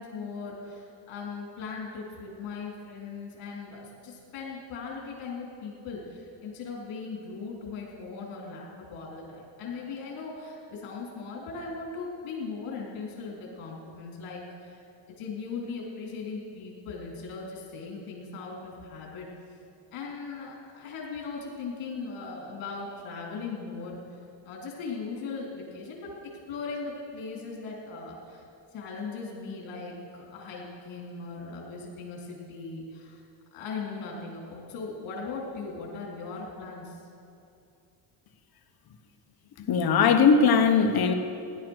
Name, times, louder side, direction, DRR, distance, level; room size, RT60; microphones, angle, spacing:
voice 1, 0.0-14.8 15.1-19.3 19.9-24.2 24.5-26.1 26.5-28.4 28.7-33.2 33.5-37.0, left 4 dB, 65° left, -2 dB, 3.6 m, -38 dB
voice 2, 39.7-41.1, left 5 dB, 45° left, 7 dB, 1.3 m, -20 dB
16.5 x 11.0 x 6.4 m, 2.7 s
cardioid pair, 115°, 49 cm